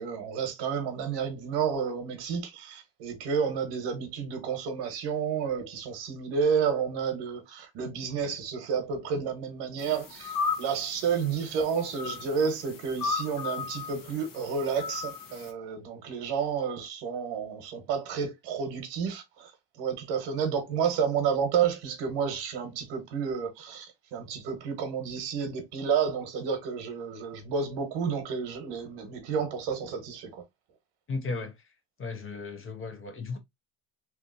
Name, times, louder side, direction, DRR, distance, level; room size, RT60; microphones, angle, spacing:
voice 1, 0.0-19.5 19.8-30.4, right 6 dB, 85° right, 1.2 m, -30 dB
sound 1, 9.8-15.5, left 5 dB, 50° left, 1.1 m, -36 dB
voice 2, 31.1-31.5 32.0-33.4, left 4 dB, 30° left, 0.8 m, -35 dB
3.2 x 2.8 x 2.6 m
cardioid pair, 100°, 42 cm